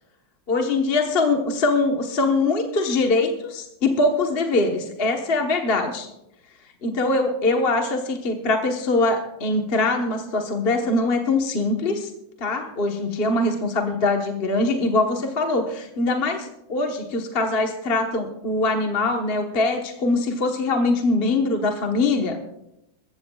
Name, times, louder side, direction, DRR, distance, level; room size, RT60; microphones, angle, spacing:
voice 1, 0.5-6.1 6.8-12.1 12.4-22.4, left 2 dB, 35° left, 3 dB, 1.2 m, -22 dB
21.5 x 15.5 x 2.3 m, 0.84 s
omnidirectional pair, 2.1 m